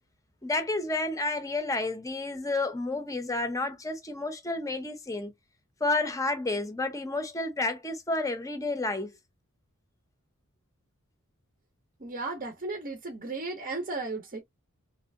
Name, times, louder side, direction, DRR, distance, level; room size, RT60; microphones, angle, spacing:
voice 1, 0.4-5.3 5.8-9.1, left 2 dB, 15° left, 0.7 m, -30 dB
voice 2, 12.0-14.4, right 3 dB, 40° right, 0.7 m, -35 dB
3.2 x 2.7 x 2.6 m
head